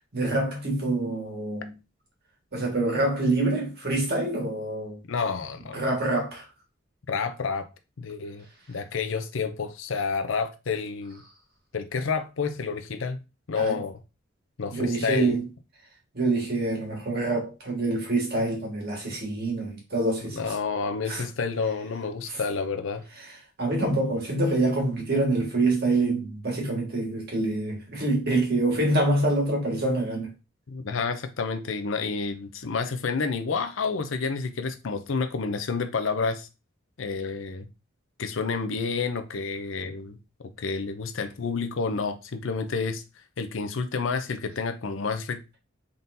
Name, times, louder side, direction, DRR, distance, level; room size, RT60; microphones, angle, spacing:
voice 1, 0.1-1.7 2.5-5.0 5.7-6.5 13.5-13.8 14.7-15.5 16.1-20.4 21.1-21.2 22.3-22.4 23.6-30.3, right 2 dB, 50° right, 1.7 m, -26 dB
voice 2, 5.1-5.8 7.1-7.7 8.0-11.2 11.7-13.2 13.5-14.0 14.6-15.3 20.3-23.0 30.7-36.5 37.0-37.7 38.2-40.2 40.6-43.0 43.4-45.6, left 5 dB, 65° left, 0.5 m, -29 dB
4.1 x 3.7 x 2.7 m
head